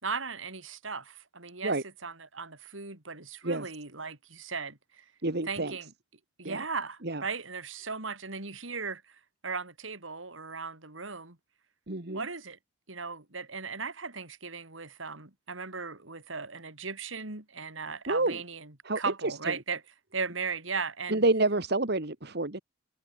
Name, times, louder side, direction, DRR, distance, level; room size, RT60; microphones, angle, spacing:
voice 1, 0.0-1.8 2.0-5.0 5.5-5.9 6.4-11.4 12.1-12.6 12.9-19.8 20.1-21.2, right 5 dB, 80° right, 3.9 m, -37 dB
voice 2, 5.2-5.8 6.5-6.7 7.0-7.2 11.9-12.3 18.1-18.4 18.8-19.5 21.1-22.6, right 2 dB, 55° right, 1.9 m, -28 dB
head